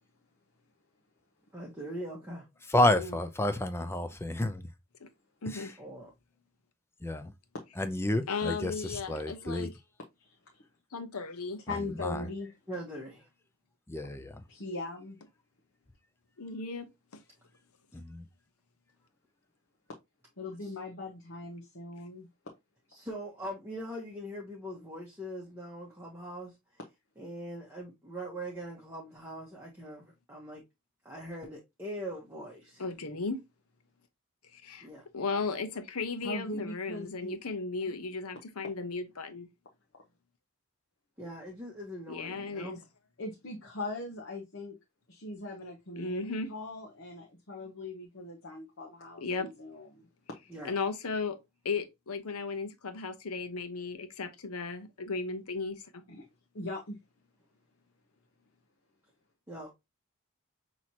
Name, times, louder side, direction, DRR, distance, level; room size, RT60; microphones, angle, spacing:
voice 1, 1.5-2.5 5.8-6.1 12.7-13.3 20.6-20.7 22.9-26.5 27.2-30.6 31.0-32.8 34.8-35.0 41.2-42.8 50.5-50.7 59.5-59.7, equal, 10° right, 0.9 m, -42 dB
voice 2, 2.7-4.7 5.5-5.7 7.0-7.3 7.8-9.7 12.0-12.3 13.9-14.4 17.9-18.3, left 1 dB, 10° left, 0.4 m, -30 dB
voice 3, 5.4-5.8 8.3-9.7 10.9-11.6 16.4-16.8 17.1-17.2 32.8-33.4 34.5-34.9 35.1-39.5 42.1-42.8 46.0-46.5 49.2-49.5 50.6-51.4 51.6-56.0, left 4 dB, 85° left, 0.9 m, -35 dB
voice 4, 10.2-10.6 11.7-12.5 14.5-15.2 20.4-22.3 36.2-37.4 43.2-44.8 45.1-50.1 56.1-56.3 56.5-57.0, left 2 dB, 60° left, 0.9 m, -40 dB
5.9 x 3.0 x 2.8 m
head